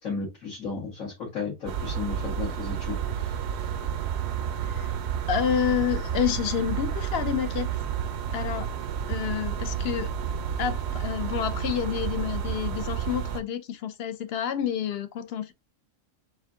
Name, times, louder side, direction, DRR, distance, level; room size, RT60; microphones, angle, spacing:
voice 1, 0.0-3.3, left 4 dB, 80° left, 2.1 m, -34 dB
sound 1, 1.7-13.4, right 8 dB, 65° right, 0.8 m, -30 dB
voice 2, 5.3-7.7 8.3-8.7 9.1-10.1 10.6-15.5, left 9 dB, 60° left, 0.7 m, -29 dB
4.3 x 2.6 x 3.6 m
omnidirectional pair, 1.4 m